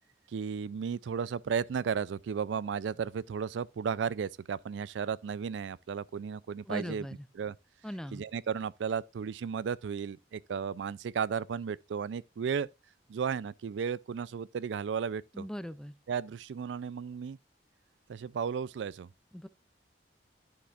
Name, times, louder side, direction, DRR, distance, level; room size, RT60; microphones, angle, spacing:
voice 1, 0.3-7.1 7.4-7.6 8.1-12.7 13.1-15.5 16.1-17.4 18.1-19.1, right 6 dB, 85° right, 0.4 m, -34 dB
voice 2, 6.7-7.3 7.8-8.2 15.3-16.0 19.3-19.5, equal, 5° left, 0.4 m, -39 dB
11.0 x 6.7 x 2.4 m
head